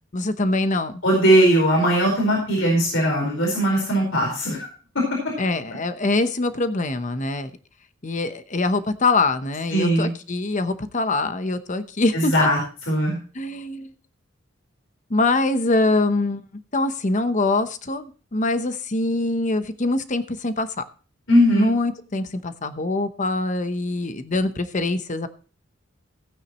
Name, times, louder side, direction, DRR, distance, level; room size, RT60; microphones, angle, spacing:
voice 1, 0.1-0.9 5.4-7.5 8.0-12.5 13.3-13.9 15.1-20.7 21.5-25.3, left 2 dB, 40° left, 11 dB, 0.9 m, -24 dB
voice 2, 1.0-4.7 4.9-5.3 9.7-10.1 12.1-12.6 12.9-13.2 21.3-21.7, equal, 80° left, -1 dB, 4.6 m, -19 dB
16.0 x 9.2 x 3.0 m, 0.37 s
head